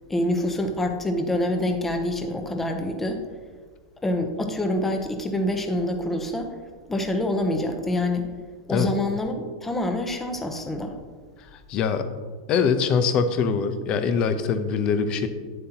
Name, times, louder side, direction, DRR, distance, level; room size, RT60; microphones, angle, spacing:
voice 1, 0.1-3.2 4.0-6.5 6.9-8.3 8.7-11.0, left 1 dB, 10° left, 5 dB, 1.0 m, -26 dB
voice 2, 11.5-12.1 12.5-15.3, left 6 dB, 35° left, 9 dB, 0.8 m, -23 dB
9.5 x 7.7 x 3.0 m, 1.5 s
hypercardioid pair, 130°, 2 cm